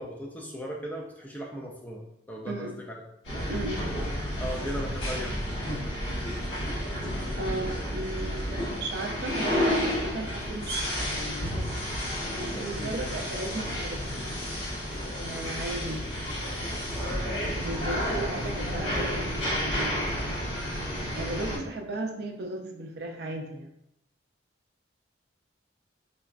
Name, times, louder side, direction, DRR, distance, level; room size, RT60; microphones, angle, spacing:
voice 1, 0.0-3.0 4.4-5.5 12.5-13.1 14.1-14.2, equal, 10° left, -1 dB, 0.3 m, -38 dB
sound 1, 3.2-21.6, equal, 80° left, 1.3 m, -31 dB
voice 2, 3.5-3.9 7.4-11.5 12.3-14.2 15.2-16.1 17.5-20.5 20.9-23.7, right 2 dB, 55° right, 2 dB, 0.5 m, -36 dB
sound 2, 9.4-19.5, equal, 50° left, 1.3 m, -46 dB
3.9 x 2.2 x 2.4 m, 0.78 s
head